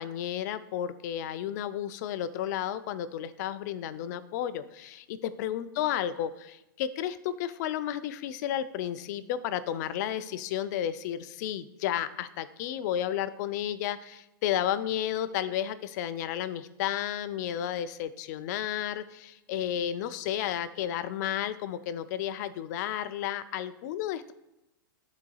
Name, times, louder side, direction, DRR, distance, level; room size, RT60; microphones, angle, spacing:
voice 1, 0.0-24.3, left 10 dB, 50° left, 13 dB, 0.4 m, -32 dB
11.5 x 4.1 x 2.3 m, 0.93 s
hypercardioid pair, 125°, 12 cm